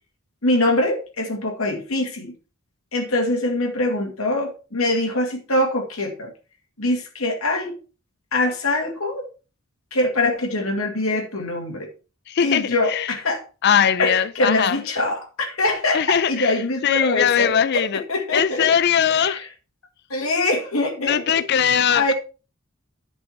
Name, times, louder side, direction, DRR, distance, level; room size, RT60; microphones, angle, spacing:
voice 1, 0.4-2.3 2.9-6.3 6.8-7.7 8.3-9.3 9.9-11.9 12.4-13.4 14.0-18.7 19.2-19.4 20.1-22.1, left 2 dB, 80° left, 2.2 m, -23 dB
voice 2, 12.3-13.1 13.6-14.8 15.9-18.0 18.3-19.5 21.0-22.1, left 8 dB, 50° left, 0.4 m, -20 dB
11.0 x 5.4 x 4.5 m
head